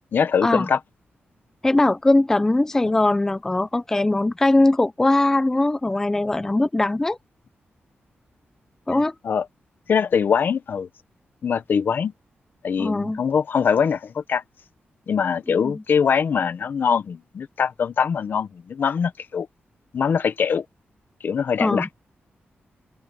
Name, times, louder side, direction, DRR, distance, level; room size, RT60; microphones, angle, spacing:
voice 1, 0.1-0.8 8.9-9.0 9.2-9.5 9.9-10.9 11.4-12.1 12.6-14.4 15.1-19.5 19.9-20.6 21.2-21.9, left 6 dB, 60° left, 0.8 m, -22 dB
voice 2, 1.6-7.2 8.9-9.1 12.8-13.2 15.6-15.7 21.6-21.9, left 2 dB, 10° left, 0.4 m, -20 dB
open air
wide cardioid pair, 160°, 4 cm